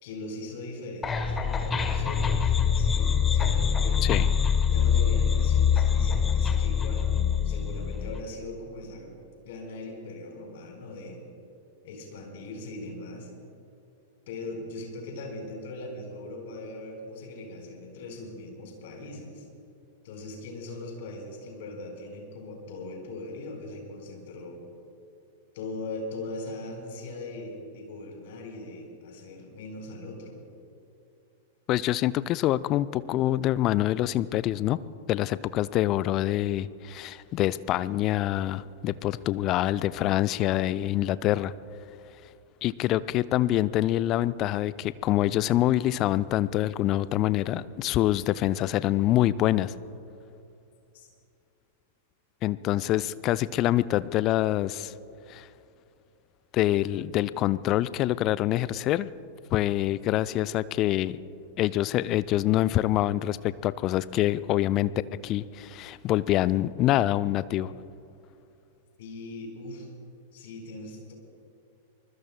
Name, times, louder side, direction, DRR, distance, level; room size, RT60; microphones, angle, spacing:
voice 1, 0.0-4.0 4.7-7.1 7.4-9.1 9.4-11.2 11.8-13.3 14.3-19.5 20.0-24.6 25.5-30.4 50.9-51.1 69.0-69.9 70.3-71.1, left 2 dB, 55° left, 1 dB, 4.5 m, -40 dB
sound 1, 1.0-8.2, left 7 dB, 20° left, 1.1 m, -24 dB
voice 2, 31.7-34.8 35.1-41.5 42.6-49.7 52.4-54.9 55.3-55.5 56.5-59.1 59.5-61.2 61.6-64.9 65.2-67.7, left 14 dB, 35° left, 17 dB, 0.4 m, -25 dB
25.0 x 20.5 x 2.2 m, 2.7 s
figure-of-eight pair, 95°, 0 cm